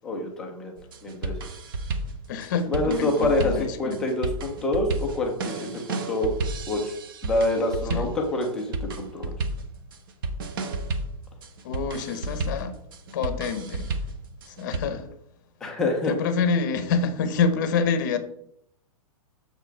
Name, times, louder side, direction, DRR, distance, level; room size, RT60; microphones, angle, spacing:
voice 1, 0.0-0.7 1.0-1.4 2.7-6.3 6.7-6.9 7.2-9.3 15.6-16.2, left 2 dB, 5° left, 0.3 m, -26 dB
sound 1, 0.8-14.8, right 2 dB, 35° right, 0.6 m, -32 dB
voice 2, 2.3-4.0 7.9-8.1 11.6-12.7 13.1-14.0 14.5-15.1 16.1-18.2, left 5 dB, 30° left, 0.7 m, -27 dB
6.8 x 4.6 x 4.5 m
hypercardioid pair, 180°, 19 cm